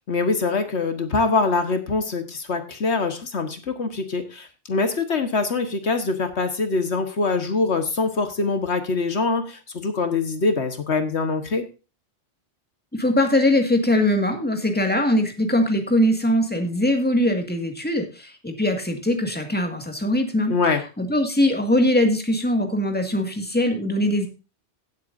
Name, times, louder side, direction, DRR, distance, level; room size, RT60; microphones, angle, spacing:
voice 1, 0.1-11.6 20.5-20.8, left 3 dB, 75° left, 7 dB, 1.7 m, -24 dB
voice 2, 12.9-20.5 21.0-24.3, left 1 dB, 10° left, 4 dB, 2.0 m, -21 dB
17.0 x 8.1 x 2.6 m, 0.31 s
omnidirectional pair, 1.2 m